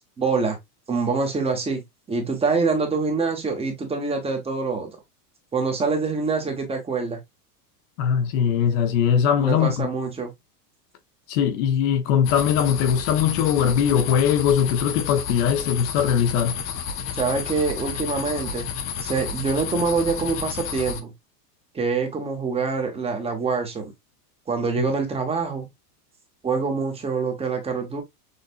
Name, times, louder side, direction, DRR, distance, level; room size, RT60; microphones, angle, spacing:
voice 1, 0.2-0.6 0.9-1.8 2.1-5.0 5.5-7.2 9.4-10.3 17.1-18.7 19.0-21.1 21.7-23.9 24.5-25.7 26.4-28.0, right 4 dB, 10° right, 1.1 m, -25 dB
voice 2, 8.0-9.9 11.3-16.6, left 8 dB, 50° left, 0.9 m, -21 dB
sound 1, 12.3-21.0, left 7 dB, 30° left, 0.6 m, -31 dB
6.6 x 2.5 x 2.5 m
supercardioid pair, 150°, 49 cm